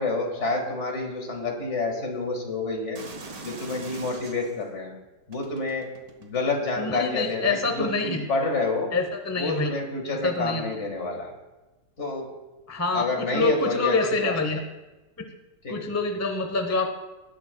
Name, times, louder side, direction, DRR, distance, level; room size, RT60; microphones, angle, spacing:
voice 1, 0.0-3.0 3.4-4.9 5.3-5.9 6.2-8.9 9.4-11.3 12.0-12.3 12.9-14.0 14.2-14.4 15.6-15.8, left 3 dB, 45° left, 1 dB, 2.1 m, -28 dB
sound 1, 2.9-4.6 5.3-6.7 7.5-7.7, right 3 dB, 60° right, 1.7 m, -41 dB
voice 2, 6.8-8.2 8.9-9.8 10.1-10.8 12.7-14.6 15.2-15.3 15.7-16.9, left 3 dB, 15° left, 5 dB, 0.6 m, -26 dB
19.0 x 9.9 x 2.3 m, 1.1 s
omnidirectional pair, 1.8 m